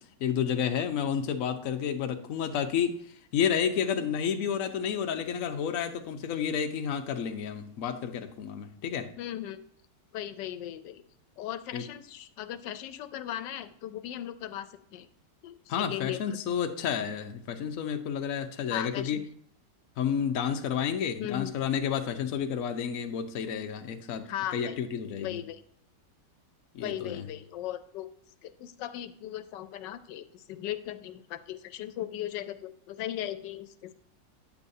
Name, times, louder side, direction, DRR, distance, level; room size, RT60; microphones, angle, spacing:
voice 1, 0.2-3.0 3.3-9.1 11.7-11.8 15.7-19.2 20.0-25.4 26.7-27.3, left 8 dB, 55° left, 5 dB, 1.1 m, -30 dB
voice 2, 9.2-9.6 10.1-11.0 11.4-15.1 15.4-16.4 18.7-19.2 21.2-21.5 24.2-24.8 25.2-25.6 26.8-28.1 28.4-33.9, left 12 dB, 90° left, 11 dB, 1.3 m, -37 dB
9.2 x 8.4 x 2.7 m, 0.67 s
omnidirectional pair, 1.9 m